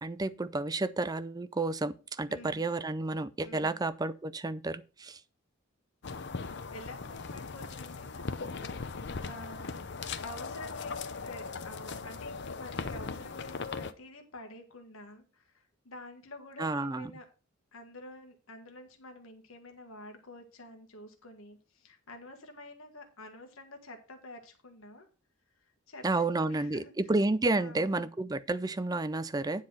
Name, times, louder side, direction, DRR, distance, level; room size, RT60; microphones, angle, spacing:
voice 1, 0.0-5.2 16.6-17.1 26.0-29.6, right 2 dB, 20° right, 0.4 m, -31 dB
voice 2, 2.3-2.6 3.4-3.8 6.7-9.7 10.2-17.3 17.7-25.1 25.9-26.9 27.5-28.1, left 1 dB, 70° left, 1.5 m, -49 dB
sound 1, 6.0-13.9, left 4 dB, 55° left, 0.7 m, -39 dB
9.8 x 4.2 x 6.3 m
head